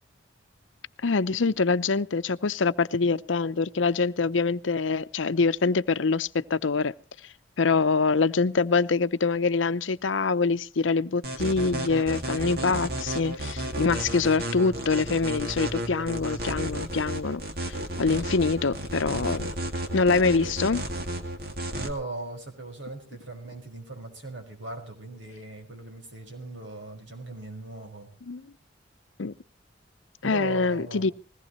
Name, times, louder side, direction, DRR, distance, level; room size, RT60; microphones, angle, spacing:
voice 1, 1.0-6.9 7.6-17.4 18.0-19.5 19.9-20.8 28.3-28.4 29.2-29.3 30.2-31.1, left 4 dB, 85° left, 0.7 m, -25 dB
sound 1, 11.2-21.9, right 1 dB, 50° right, 2.2 m, -32 dB
voice 2, 21.7-28.1 30.2-31.1, right 2 dB, 85° right, 5.5 m, -39 dB
21.0 x 18.0 x 3.1 m
head